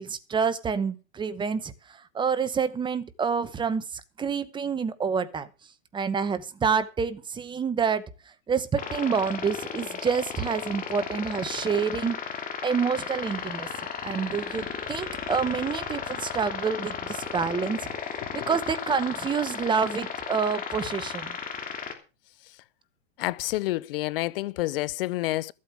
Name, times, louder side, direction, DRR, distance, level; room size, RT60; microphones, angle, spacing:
voice 1, 0.0-1.7 2.1-3.8 4.2-5.5 5.9-8.1 8.5-12.2 12.6-13.7 14.0-17.9 18.3-21.4, right 6 dB, 15° right, 0.9 m, -27 dB
sound 1, 8.8-21.9, left 6 dB, 25° left, 3.0 m, -35 dB
voice 2, 23.2-25.5, left 18 dB, 55° left, 0.6 m, -29 dB
14.5 x 8.4 x 6.0 m
hypercardioid pair, 135°, 35 cm